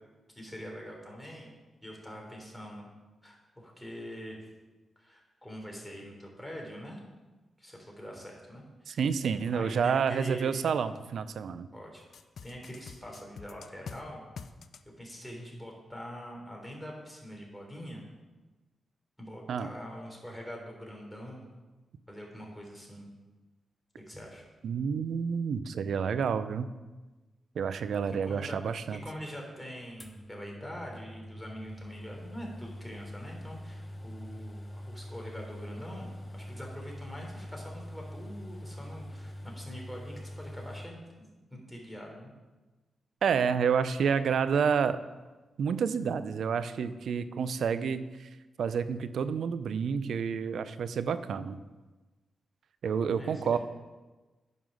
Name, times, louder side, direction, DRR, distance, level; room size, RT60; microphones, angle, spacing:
voice 1, 0.4-1.5 1.8-2.9 3.2-4.4 5.0-7.0 7.6-9.0 9.5-10.6 11.7-12.0 12.4-14.3 15.0-18.0 19.2-21.5 22.1-23.1 24.1-24.4 28.1-36.1 36.3-41.0 41.5-42.3 53.2-53.6, equal, 5° left, -1 dB, 3.5 m, -44 dB
voice 2, 8.9-11.7 19.5-19.7 24.6-26.7 27.6-29.0 43.2-45.0 45.6-48.3 48.6-51.6 52.8-53.6, right 6 dB, 75° right, 13 dB, 0.5 m, -29 dB
sound 1, 12.1-14.0 14.4-14.8, left 6 dB, 70° left, 0.5 m, -44 dB
sound 2, 30.0-40.9, equal, 25° left, 1.2 m, -44 dB
9.4 x 5.6 x 6.3 m, 1.2 s
supercardioid pair, 50°, 0 cm